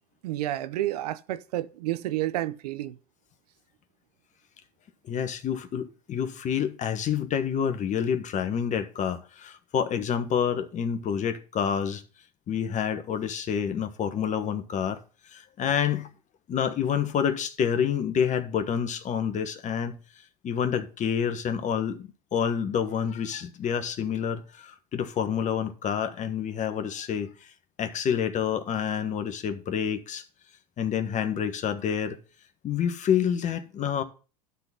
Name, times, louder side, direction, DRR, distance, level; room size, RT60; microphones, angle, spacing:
voice 1, 0.2-3.0, right 14 dB, 80° right, 0.6 m, -30 dB
voice 2, 5.1-12.0 12.5-15.0 15.3-16.1 16.5-20.0 20.4-27.3 27.8-30.2 30.8-32.2 32.6-34.0, left 8 dB, 40° left, 1.3 m, -28 dB
12.0 x 4.0 x 5.6 m
hypercardioid pair, 95°, 20 cm